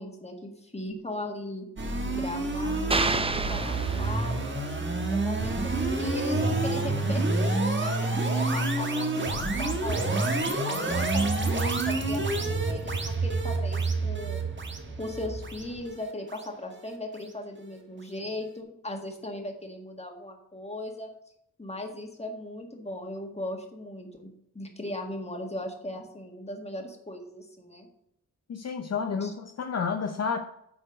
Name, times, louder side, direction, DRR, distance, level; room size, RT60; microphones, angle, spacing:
voice 1, 0.0-1.7 2.1-4.6 5.1-10.3 10.6-14.4 15.0-21.1 21.6-24.3 24.5-27.9 29.2-29.3, left 1 dB, 20° left, 3 dB, 1.7 m, -38 dB
sound 1, 1.8-16.9, right 2 dB, 35° right, 1.3 m, -29 dB
sound 2, 2.9-4.6, right 3 dB, 15° right, 0.5 m, -29 dB
sound 3, 10.9-15.9, right 4 dB, 80° right, 3.6 m, -31 dB
voice 2, 28.5-30.4, left 5 dB, 50° left, 5 dB, 0.7 m, -30 dB
8.6 x 4.4 x 6.3 m, 0.78 s
wide cardioid pair, 95°, 33 cm